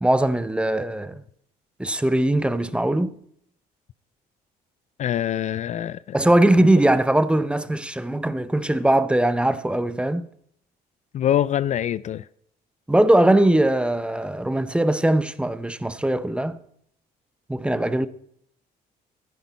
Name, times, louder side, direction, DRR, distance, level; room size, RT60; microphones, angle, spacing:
voice 1, 0.0-1.2 1.8-3.1 6.1-10.3 12.9-16.6 17.5-18.1, right 1 dB, 5° right, 0.7 m, -20 dB
voice 2, 5.0-6.2 6.6-6.7 11.1-12.3, left 11 dB, 45° left, 0.4 m, -24 dB
14.0 x 10.5 x 4.1 m
cardioid pair, 110°, 17 cm